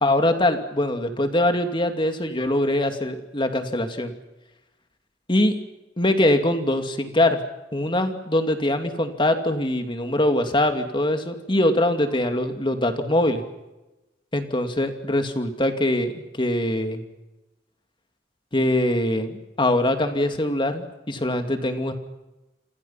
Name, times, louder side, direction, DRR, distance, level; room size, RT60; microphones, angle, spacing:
voice 1, 0.0-4.1 5.3-5.5 6.0-7.4 7.7-13.4 14.3-17.0 18.5-21.9, left 1 dB, 30° left, 6 dB, 2.5 m, -23 dB
29.0 x 26.5 x 5.8 m, 1.0 s
head